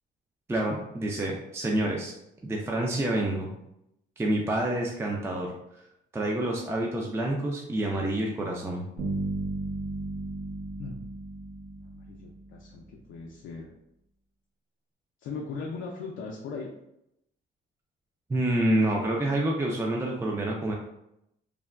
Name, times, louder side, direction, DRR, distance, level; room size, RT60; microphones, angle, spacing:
voice 1, 0.5-2.1 2.4-3.6 4.2-5.5 6.1-8.8 18.3-20.7, right 1 dB, 15° right, -1 dB, 0.4 m, -28 dB
sound 1, 9.0-12.7, right 2 dB, 60° right, 1.0 m, -34 dB
voice 2, 11.8-13.7 15.2-16.7, left 4 dB, 80° left, -1 dB, 0.4 m, -39 dB
3.3 x 2.1 x 2.3 m, 0.82 s
cardioid pair, 90°, 20 cm